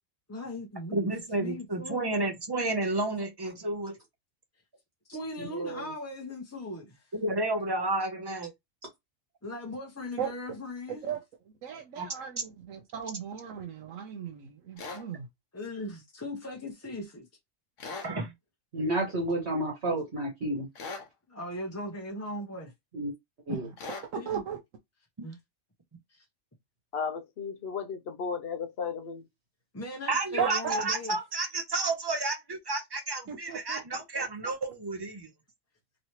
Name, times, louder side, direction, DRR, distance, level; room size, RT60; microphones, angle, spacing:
voice 1, 0.3-1.1 1.4-2.2 5.1-7.1 9.4-11.1 15.5-17.3 21.3-22.7 24.1-24.4 25.2-25.4 26.1-26.2 29.7-31.2, left 1 dB, 15° left, 0.6 m, -39 dB
voice 2, 0.9-4.0 7.1-8.5 11.7-12.1 18.0-18.3 30.1-35.3, right 2 dB, 30° right, 0.4 m, -31 dB
voice 3, 5.4-5.9 18.7-20.7 22.9-23.1 23.5-23.7, right 1 dB, 55° right, 1.4 m, -31 dB
voice 4, 11.6-15.3 23.5-23.7 24.1-24.6 30.4-30.8 33.3-33.8 34.1-34.3, right 7 dB, 75° right, 1.1 m, -36 dB
sound 1, 14.8-15.0 17.8-18.1 20.8-21.1 23.8-24.1, left 4 dB, 75° left, 1.3 m, -39 dB
voice 5, 26.9-29.2, left 6 dB, 55° left, 0.8 m, -34 dB
3.1 x 2.9 x 2.8 m
omnidirectional pair, 1.4 m